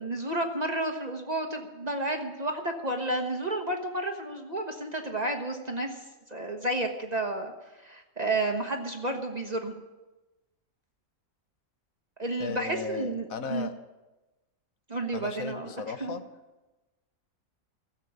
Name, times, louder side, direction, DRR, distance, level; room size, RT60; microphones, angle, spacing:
voice 1, 0.0-6.0 6.3-7.5 7.8-9.7 12.2-13.7 14.9-15.7 16.0-16.2, right 2 dB, 30° right, 3 dB, 1.2 m, -31 dB
voice 2, 12.4-13.7 15.1-16.2, left 5 dB, 75° left, 9 dB, 1.4 m, -36 dB
16.0 x 7.6 x 9.3 m, 1.1 s
omnidirectional pair, 1.5 m